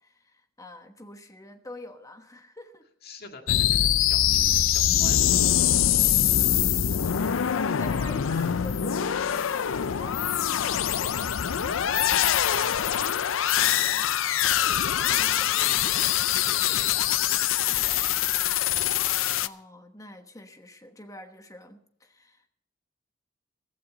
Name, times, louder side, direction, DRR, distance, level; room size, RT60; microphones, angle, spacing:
voice 1, 0.0-2.9 7.6-11.5 13.9-14.1 15.2-15.5 19.4-22.5, left 1 dB, 15° left, 1.1 m, -46 dB
voice 2, 3.0-5.4 12.0-13.1 14.6-17.4, left 3 dB, 50° left, 1.9 m, -45 dB
Weird chirp, 3.5-19.5, left 10 dB, 70° left, 0.5 m, -24 dB
15.5 x 14.5 x 4.0 m
head